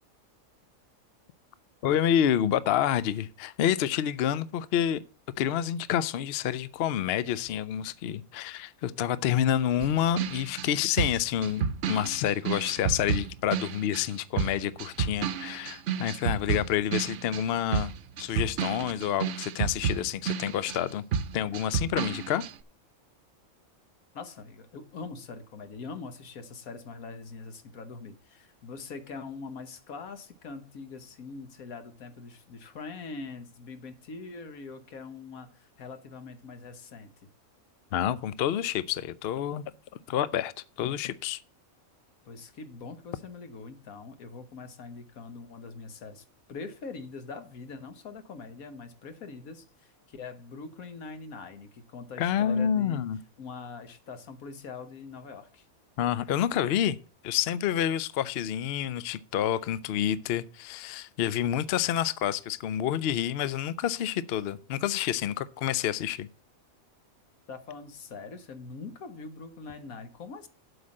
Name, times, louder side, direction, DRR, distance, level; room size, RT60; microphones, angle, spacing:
voice 1, 1.8-5.0 5.4-17.9 18.2-21.0 21.3-22.4 37.9-39.7 40.1-40.5 40.8-41.4 52.2-53.2 56.0-57.0 57.2-66.3, left 10 dB, 65° left, 0.6 m, -28 dB
sound 1, 9.8-14.1 14.4-20.9 21.1-22.5, right 7 dB, 65° right, 0.9 m, -31 dB
voice 2, 24.1-37.3 42.2-53.0 53.4-55.7 67.5-70.5, left 4 dB, 80° left, 1.6 m, -43 dB
8.0 x 5.2 x 7.5 m
omnidirectional pair, 1.5 m